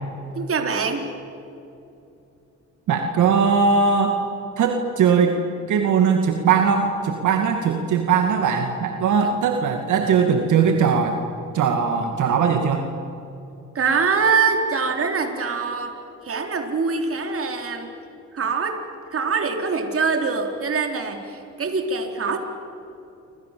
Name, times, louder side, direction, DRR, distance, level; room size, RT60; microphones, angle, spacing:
voice 1, 0.4-1.1 9.2-9.3 13.7-15.9 16.2-17.9 18.3-18.8 19.1-22.4, right 5 dB, 50° right, 4 dB, 4.3 m, -23 dB
voice 2, 2.9-4.2 4.6-5.4 5.7-11.2 11.5-12.9, right 6 dB, 75° right, 4 dB, 2.3 m, -20 dB
29.5 x 26.0 x 7.7 m, 2.7 s
cardioid pair, 90°, 30 cm